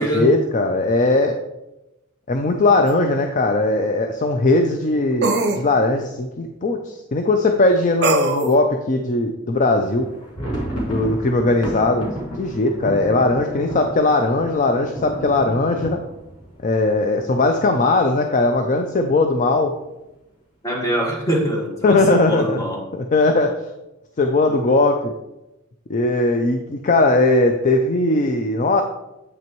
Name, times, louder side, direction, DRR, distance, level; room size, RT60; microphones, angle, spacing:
voice 1, 0.0-1.4 2.3-10.1 10.9-12.1 12.4-16.0 16.6-19.7 21.8-22.6 22.9-23.5 24.2-25.1 25.9-28.8, left 2 dB, 35° left, 5 dB, 0.4 m, -19 dB
sound 1, 2.9-3.0 5.2-5.6 8.0-8.5, right 3 dB, 50° right, 0.6 m, -20 dB
sound 2, 10.0-17.7 18.0-18.2 18.4-18.6 19.2-19.7, right 1 dB, 85° left, 2.0 m, -32 dB
voice 2, 20.6-22.8 24.5-24.6, equal, 15° left, -2 dB, 1.5 m, -23 dB
8.0 x 6.0 x 3.0 m, 0.93 s
head